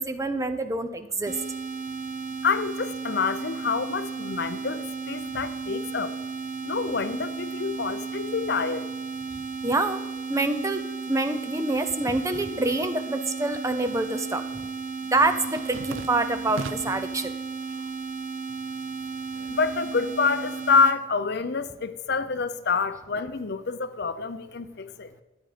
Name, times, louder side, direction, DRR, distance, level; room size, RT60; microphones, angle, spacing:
voice 1, 0.0-1.4 9.6-10.0 10.3-14.4 15.1-17.3, right 2 dB, 15° right, 10 dB, 0.7 m, -26 dB
sound 1, 1.3-21.0, right 5 dB, 45° right, 1.0 m, -34 dB
voice 2, 2.4-6.2 6.6-8.9 19.5-25.1, left 5 dB, 55° left, 12 dB, 0.6 m, -27 dB
sound 2, 13.5-14.0 14.3-17.1 17.6-18.2 18.5-20.2, right 3 dB, 90° right, 0.7 m, -40 dB
13.0 x 9.3 x 5.0 m, 1.1 s
head